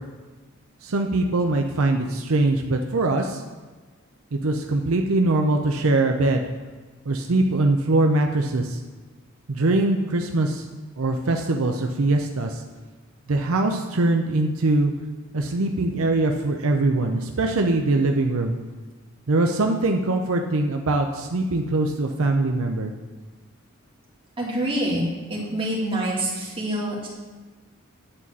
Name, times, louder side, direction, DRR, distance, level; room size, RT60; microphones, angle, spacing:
voice 1, 0.8-3.4 4.3-6.4 7.1-8.8 9.5-10.7 11.0-12.6 13.3-14.9 15.3-18.5 19.3-22.9, right 2 dB, 80° right, 3 dB, 0.7 m, -22 dB
voice 2, 24.4-27.1, right 1 dB, 25° right, -5 dB, 2.4 m, -26 dB
9.9 x 4.1 x 7.4 m, 1.3 s
head